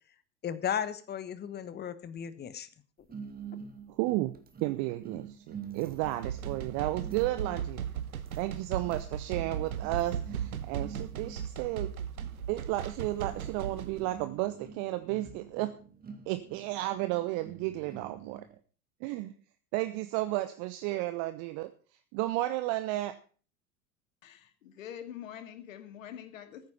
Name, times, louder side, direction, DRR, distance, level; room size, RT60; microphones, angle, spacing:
voice 1, 0.4-2.7, left 9 dB, 25° left, 15 dB, 1.2 m, -35 dB
sound 1, 3.1-18.6, right 7 dB, 20° right, 2.0 m, -47 dB
voice 2, 4.0-4.3 4.6-7.9 8.4-11.9 12.5-15.7 16.3-18.4 19.0-19.3 19.7-21.7 22.1-23.1, right 17 dB, 45° right, 11 dB, 1.0 m, -33 dB
sound 2, 5.9-14.0, right 8 dB, 75° right, 1.2 m, -37 dB
voice 3, 24.2-26.7, left 10 dB, 65° left, 10 dB, 2.1 m, -45 dB
14.5 x 9.6 x 5.4 m, 0.40 s
figure-of-eight pair, 80°, 43 cm